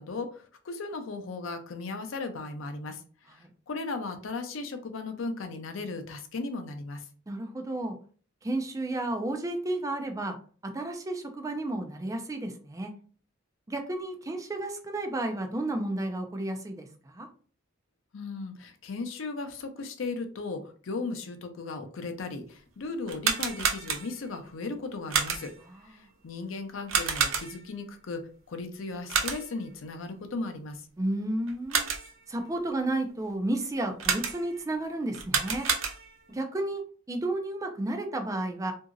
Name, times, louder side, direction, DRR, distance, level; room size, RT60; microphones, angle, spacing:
voice 1, 0.0-3.0 3.3-7.1 18.1-25.5 25.8-30.8, left 3 dB, 80° left, 7 dB, 0.5 m, -36 dB
voice 2, 7.3-7.9 8.4-10.4 10.6-12.9 13.7-17.3 26.0-26.1 31.0-31.9 32.3-35.7 36.3-38.7, right 2 dB, 15° right, 5 dB, 0.4 m, -32 dB
sound 1, 23.0-24.3 25.1-25.7 26.9-27.8 29.1-29.7 31.5-32.2 34.0-34.6 35.1-36.3, right 6 dB, 80° right, 0.6 m, -29 dB
2.8 x 2.6 x 2.5 m, 0.42 s
head